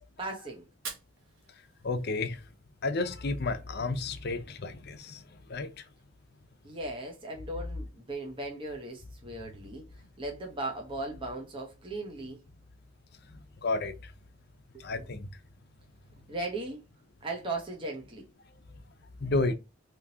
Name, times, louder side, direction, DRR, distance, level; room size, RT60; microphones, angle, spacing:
voice 1, 0.2-0.7 6.6-9.8 10.2-12.4 14.7-15.1 16.3-16.8 17.2-18.3, right 2 dB, 25° right, 0.9 m, -37 dB
Fire, 0.7-2.7, right 5 dB, 85° right, 1.1 m, -46 dB
voice 2, 1.8-2.4 2.8-5.2 5.5-5.7 13.3-14.1 14.8-15.3 19.2-19.5, left 3 dB, 55° left, 0.6 m, -31 dB
3.5 x 2.8 x 2.8 m
head